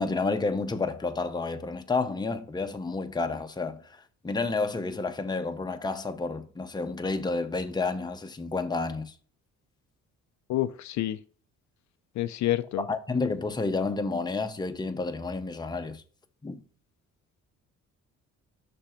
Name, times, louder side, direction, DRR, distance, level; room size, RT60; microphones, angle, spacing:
voice 1, 0.0-9.1 12.8-16.0 16.4-16.6, left 3 dB, 15° left, 0.7 m, -30 dB
voice 2, 10.5-11.2 12.1-12.8, left 14 dB, 70° left, 0.5 m, -28 dB
6.0 x 3.4 x 5.6 m
cardioid pair, 90°, 30 cm